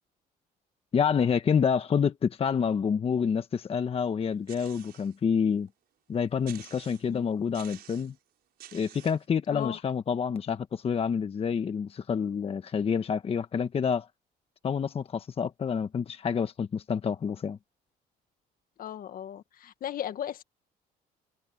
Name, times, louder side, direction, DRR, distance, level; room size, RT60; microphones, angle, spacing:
voice 1, 0.9-5.7 6.1-8.1 8.7-14.1 14.6-17.6, left 6 dB, 35° left, 1.2 m, -28 dB
sound 1, 4.5-5.2 5.7-5.8 6.4-7.2 7.5-8.2 8.6-9.3, right 12 dB, 70° right, 6.1 m, -49 dB
voice 2, 7.1-7.4 9.5-9.8 18.8-20.4, left 10 dB, 55° left, 1.6 m, -36 dB
cardioid pair, 110°, 17 cm